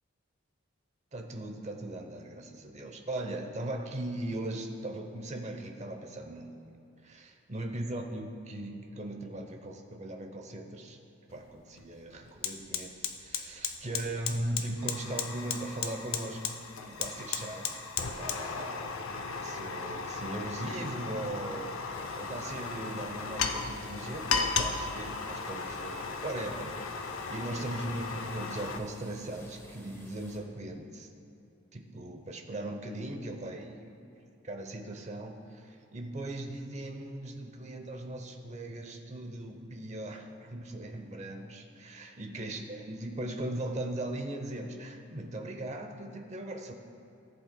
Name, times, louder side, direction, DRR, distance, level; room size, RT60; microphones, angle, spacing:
voice 1, 1.1-6.7 7.0-11.0 11.3-16.6 16.8-18.9 19.4-31.1 31.7-34.0 34.5-46.7, right 1 dB, 35° right, 4 dB, 0.7 m, -39 dB
Fire, 11.3-11.4 11.8-28.8, left 5 dB, 85° left, 0.6 m, -36 dB
sound 1, 21.9-30.4, left 1 dB, 15° left, 0.8 m, -54 dB
14.5 x 7.8 x 2.2 m, 2.8 s
head